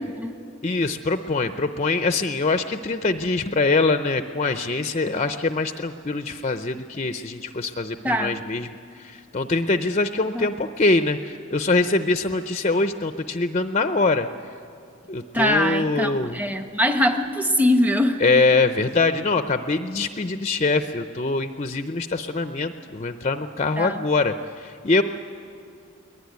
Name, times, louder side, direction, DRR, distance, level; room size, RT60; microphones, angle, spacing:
voice 1, 0.6-8.7 8.9-14.3 15.1-16.4 18.2-25.0, left 3 dB, 30° left, 9 dB, 0.6 m, -23 dB
voice 2, 8.0-8.3 10.3-10.5 15.3-18.4 23.8-24.0, left 1 dB, 10° right, 6 dB, 1.0 m, -22 dB
23.0 x 19.5 x 9.4 m, 2.4 s
head